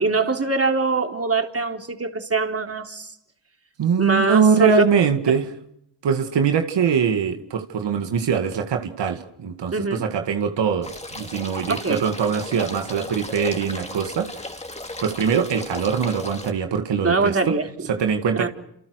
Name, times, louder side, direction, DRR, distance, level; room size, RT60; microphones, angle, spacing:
voice 1, 0.0-3.1 4.0-4.7 9.7-10.0 11.7-12.0 17.0-17.9 18.4-18.5, right 3 dB, 35° right, 4 dB, 3.8 m, -23 dB
voice 2, 3.8-5.5 6.0-14.5 15.0-17.5 17.9-18.5, right 6 dB, 85° right, 5 dB, 2.2 m, -22 dB
sound 1, 10.8-16.5, left 2 dB, 15° left, 2.8 m, -35 dB
29.5 x 28.0 x 6.5 m, 0.78 s
cardioid pair, 70°, 41 cm